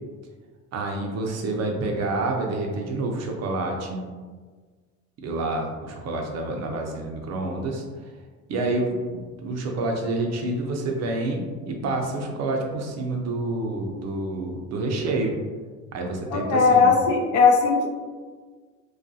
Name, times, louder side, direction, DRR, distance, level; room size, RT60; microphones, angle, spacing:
voice 1, 0.7-4.0 5.2-7.8 8.5-15.3 15.9-16.9, right 2 dB, 45° right, 2 dB, 0.5 m, -28 dB
voice 2, 16.3-17.9, left 5 dB, 50° left, 1 dB, 0.5 m, -18 dB
2.3 x 2.3 x 2.6 m, 1.5 s
supercardioid pair, 90°, 38 cm